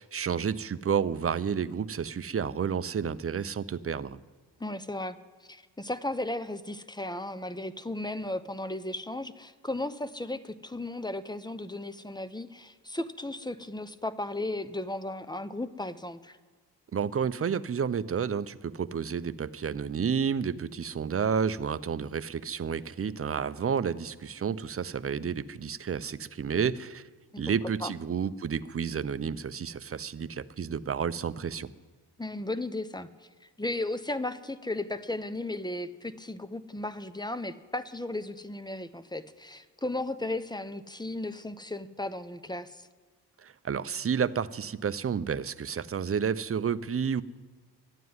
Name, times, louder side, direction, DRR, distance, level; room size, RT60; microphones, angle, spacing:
voice 1, 0.0-4.2 16.9-27.1 27.4-31.7 43.4-47.2, right 7 dB, 35° right, 15 dB, 0.6 m, -30 dB
voice 2, 4.6-5.2 5.5-16.4 27.3-27.4 27.8-27.9 32.2-33.1 33.4-42.9, left 2 dB, 10° left, 13 dB, 0.8 m, -35 dB
12.5 x 9.2 x 9.5 m, 1.4 s
cardioid pair, 60°, 42 cm